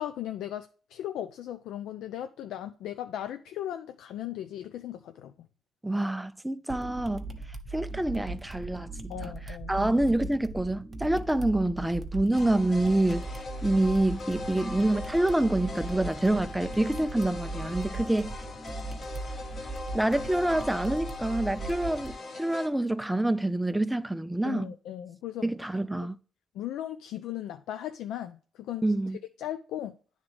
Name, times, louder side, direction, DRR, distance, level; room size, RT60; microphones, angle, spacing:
voice 1, 0.0-5.5 9.1-9.9 24.4-25.4 26.5-28.8 29.4-30.0, left 11 dB, 85° left, 0.3 m, -37 dB
voice 2, 5.8-7.2 7.7-9.3 9.7-13.3 13.6-18.4 19.9-24.7 25.4-26.2 28.8-29.2, right 1 dB, 5° right, 0.4 m, -27 dB
sound 1, 6.7-22.1, right 2 dB, 25° right, 0.9 m, -39 dB
sound 2, 12.3-22.7, left 3 dB, 45° left, 1.0 m, -40 dB
9.4 x 3.6 x 3.4 m
cardioid pair, 90°, 0 cm